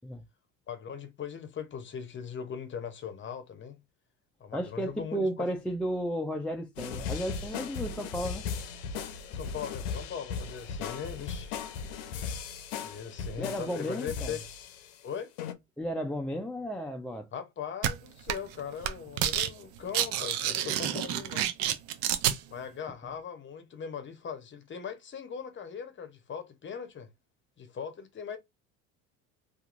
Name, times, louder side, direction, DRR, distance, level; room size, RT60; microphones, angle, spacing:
voice 1, 0.7-3.8 4.4-5.5 9.3-11.6 12.8-14.4 15.0-15.3 17.3-21.5 22.5-27.1 27.6-28.4, left 7 dB, 30° left, 0.8 m, -40 dB
voice 2, 4.5-8.4 13.4-14.4 15.8-17.3 20.8-21.0, equal, 5° left, 0.3 m, -33 dB
sound 1, 6.8-15.0 15.4-15.5, left 6 dB, 80° left, 0.6 m, -37 dB
sound 2, 17.8-17.9 18.3-18.5 18.8-19.5 19.8-22.4, right 11 dB, 70° right, 0.6 m, -28 dB
2.8 x 2.5 x 2.5 m
supercardioid pair, 80°, 37 cm